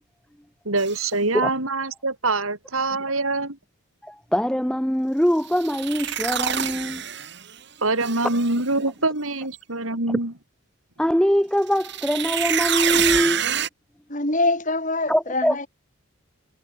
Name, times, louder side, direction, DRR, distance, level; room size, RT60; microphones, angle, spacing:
voice 1, 0.6-3.6 7.8-10.3, right 2 dB, 75° right, 4.7 m, -24 dB
sound 1, 0.8-1.1 5.5-7.5 8.0-8.6 11.7-13.7, right 9 dB, 50° right, 6.2 m, -26 dB
voice 2, 4.0-7.0 11.0-13.4 15.1-15.6, equal, 5° left, 1.1 m, -22 dB
voice 3, 14.1-15.7, left 2 dB, 35° left, 6.3 m, -24 dB
head